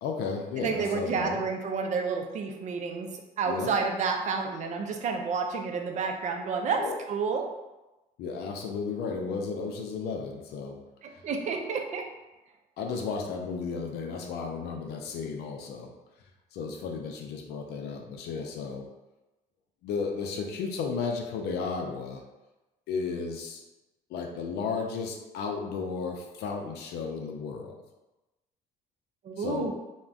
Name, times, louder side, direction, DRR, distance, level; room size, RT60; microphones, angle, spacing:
voice 1, 0.0-1.4 3.5-3.7 6.8-7.0 8.2-10.8 11.1-11.2 12.8-15.9 16.5-18.9 19.8-22.2 22.9-23.6 24.1-27.8 29.4-29.7, left 5 dB, 75° left, 3 dB, 0.4 m, -34 dB
voice 2, 0.6-3.1 3.4-7.5 11.0-12.1 29.2-29.7, right 5 dB, 45° right, 4 dB, 0.4 m, -30 dB
2.4 x 2.1 x 3.4 m, 1.0 s
cardioid pair, 110°, 17 cm